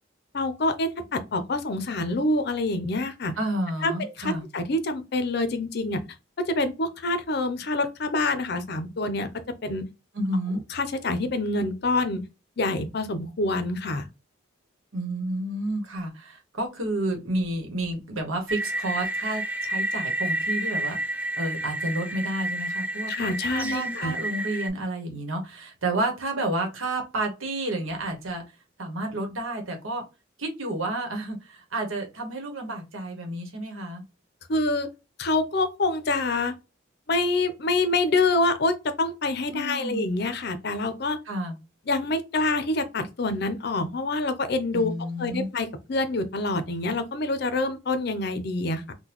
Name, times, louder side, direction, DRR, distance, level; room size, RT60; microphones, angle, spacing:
voice 1, 0.3-3.3 3.8-6.0 6.4-9.3 9.6-9.8 10.7-12.2 12.6-14.1 23.1-24.1 34.5-34.9 35.2-36.6 37.1-41.2 41.9-44.9 45.2-48.9, left 2 dB, 55° left, 0.5 m, -26 dB
voice 2, 3.4-4.4 10.1-10.6 14.9-28.4 28.8-30.0 30.4-34.0 39.5-40.0 41.3-41.6 44.7-45.5, right 1 dB, 85° right, 1.2 m, -30 dB
sound 1, 18.5-24.7, right 1 dB, 5° right, 0.3 m, -30 dB
3.8 x 2.2 x 2.9 m
head